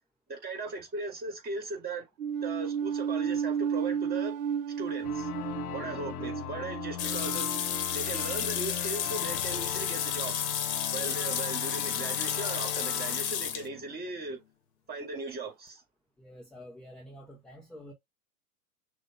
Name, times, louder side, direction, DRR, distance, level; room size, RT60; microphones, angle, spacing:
voice 1, 0.3-2.1 2.4-4.4 4.7-5.3 5.7-7.6 7.9-10.6 10.9-14.4 14.9-15.8, right 3 dB, 20° right, 2.2 m, -38 dB
sound 1, 2.2-8.6, right 7 dB, 65° right, 0.6 m, -33 dB
sound 2, 5.0-14.4, left 9 dB, 85° left, 0.7 m, -39 dB
sound 3, 7.0-13.7, left 9 dB, 35° left, 1.0 m, -32 dB
voice 2, 16.2-17.9, equal, ahead, 0.4 m, -48 dB
6.2 x 2.2 x 3.8 m
hypercardioid pair, 115°, 44 cm